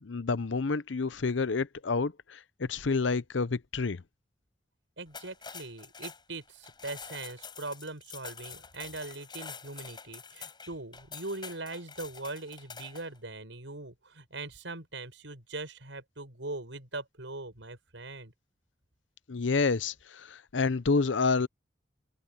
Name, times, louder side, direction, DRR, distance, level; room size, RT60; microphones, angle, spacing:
voice 1, 0.0-4.0 19.3-21.5, left 4 dB, 85° left, 0.7 m, -29 dB
voice 2, 5.0-18.3, right 2 dB, 90° right, 7.5 m, -41 dB
sound 1, 5.1-13.2, left 6 dB, 25° left, 5.9 m, -46 dB
head